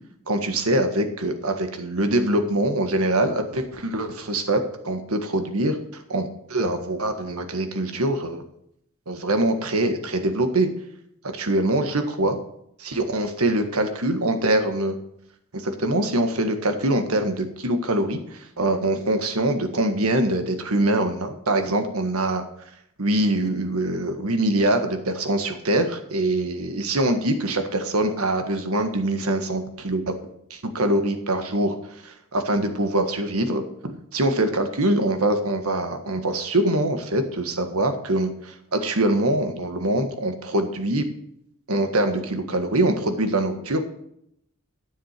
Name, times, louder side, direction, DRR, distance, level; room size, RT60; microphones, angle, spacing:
voice 1, 0.3-8.4 9.1-10.7 11.2-12.4 12.8-15.0 15.5-22.4 23.0-30.1 30.5-41.0 41.7-43.9, right 1 dB, 70° right, 7 dB, 1.6 m, -24 dB
13.0 x 7.4 x 6.6 m, 0.74 s
head